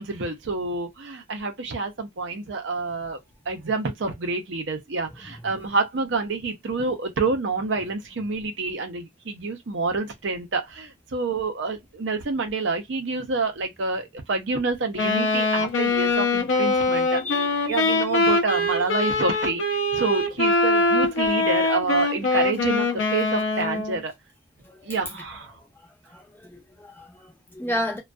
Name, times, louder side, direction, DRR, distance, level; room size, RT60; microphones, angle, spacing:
voice 1, 0.0-3.2 3.5-17.2 17.7-24.1 24.8-25.6, right 3 dB, 65° right, 0.6 m, -28 dB
Wind instrument woodwind instrument, 15.0-24.0, left 2 dB, 70° left, 0.6 m, -23 dB
voice 2, 17.1-18.3 24.6-24.9 26.1-28.0, left 2 dB, 10° left, 0.6 m, -33 dB
2.5 x 2.2 x 2.2 m
head